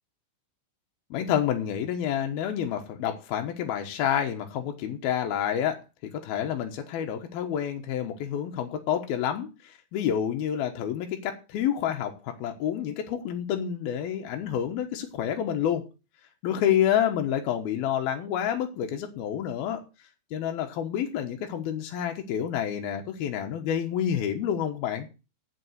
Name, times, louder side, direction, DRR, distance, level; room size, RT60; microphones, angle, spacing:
voice 1, 1.1-5.8 6.1-15.8 16.4-19.8 20.3-25.1, left 9 dB, 65° left, 3 dB, 2.6 m, -28 dB
8.8 x 7.5 x 7.9 m, 0.31 s
omnidirectional pair, 5.7 m